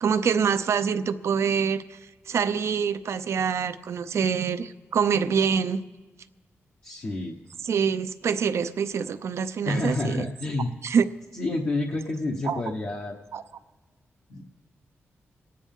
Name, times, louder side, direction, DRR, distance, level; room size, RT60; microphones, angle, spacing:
voice 1, 0.0-2.0 2.3-5.8 7.7-10.3 10.8-11.1 12.4-12.6 13.3-13.4, right 6 dB, 75° right, 11 dB, 0.6 m, -25 dB
voice 2, 6.8-7.4 9.7-10.7 11.3-13.2 14.3-14.5, left 2 dB, 50° left, -1 dB, 1.1 m, -29 dB
28.5 x 9.5 x 3.7 m, 1.3 s
cardioid pair, 95°, 5 cm